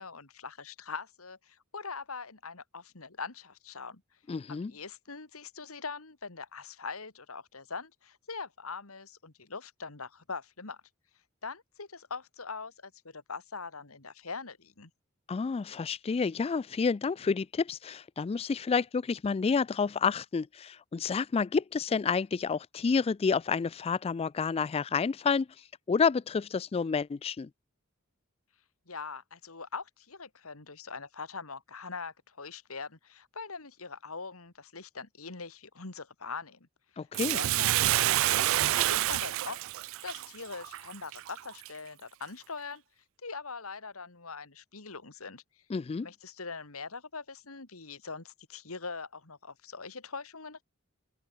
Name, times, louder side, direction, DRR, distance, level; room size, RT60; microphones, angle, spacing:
voice 1, 0.0-4.0 4.5-10.8 11.4-14.9 28.9-36.7 37.2-42.8 43.2-45.4 46.0-50.6, left 4 dB, 90° left, 2.4 m, -42 dB
voice 2, 4.3-4.7 15.3-27.5 37.0-37.4 45.7-46.1, left 5 dB, 30° left, 0.3 m, -29 dB
Bathtub (filling or washing), 37.1-41.7 42.2-42.3, right 15 dB, 65° right, 0.3 m, -28 dB
open air
head